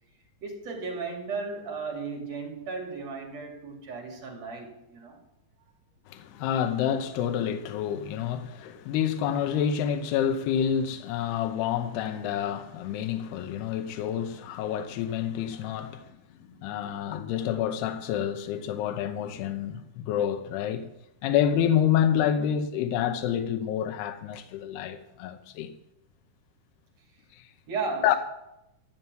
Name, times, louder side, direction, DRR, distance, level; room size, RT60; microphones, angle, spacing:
voice 1, 0.4-5.2 16.8-16.9 27.7-28.2, right 4 dB, 45° right, 3.2 m, -35 dB
voice 2, 6.1-16.1 16.6-20.8 21.2-25.7 27.3-27.5 28.0-28.2, left 9 dB, 85° left, 2.8 m, -28 dB
13.0 x 6.6 x 9.3 m
omnidirectional pair, 4.6 m